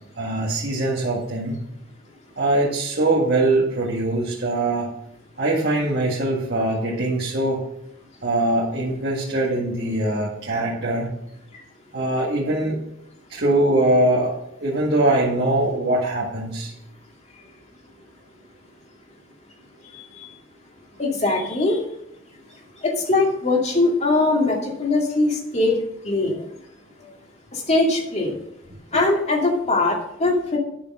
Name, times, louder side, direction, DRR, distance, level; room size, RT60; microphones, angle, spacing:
voice 1, 0.2-1.6 2.4-4.9 5.4-7.6 8.2-11.1 11.9-12.8 13.3-16.7 28.9-29.0, right 1 dB, 50° right, -4 dB, 2.0 m, -22 dB
voice 2, 19.9-20.3 21.0-21.8 22.8-25.8 26.0-26.4 27.5-28.3 28.9-30.6, left 2 dB, 35° left, 0 dB, 2.4 m, -21 dB
11.5 x 6.9 x 5.6 m, 0.77 s
head